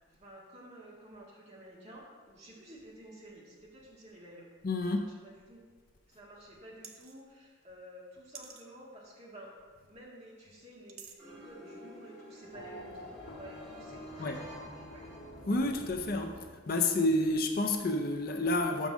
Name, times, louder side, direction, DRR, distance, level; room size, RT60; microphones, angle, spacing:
voice 1, 0.1-4.5 4.9-5.6 6.1-9.5 9.9-15.0, right 1 dB, 30° right, -5 dB, 1.8 m, -52 dB
voice 2, 4.6-5.1 14.2-14.3 15.5-16.4 16.7-18.9, left 2 dB, 45° left, 4 dB, 0.5 m, -29 dB
sound 1, 6.8-7.2 8.3-8.7 10.9-11.2, right 6 dB, 80° right, 0.7 m, -48 dB
sound 2, 11.2-15.8, equal, 5° left, 2.5 m, -51 dB
Race car auto racing / Accelerating revving vroom, 12.5-17.2, equal, 80° left, 1.3 m, -48 dB
6.3 x 5.3 x 6.2 m, 1.5 s
head